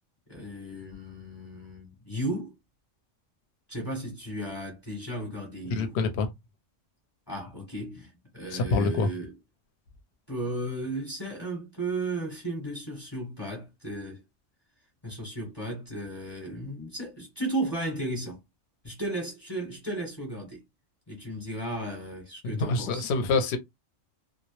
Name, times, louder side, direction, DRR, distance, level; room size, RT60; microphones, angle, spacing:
voice 1, 0.3-2.5 3.7-5.9 7.3-9.3 10.3-14.2 15.0-18.4 18.8-20.6 21.1-23.1, right 1 dB, 25° left, 0.9 m, -35 dB
voice 2, 5.7-6.3 8.5-9.1 22.4-23.6, left 3 dB, 65° left, 0.8 m, -26 dB
2.1 x 2.0 x 2.9 m
omnidirectional pair, 1.3 m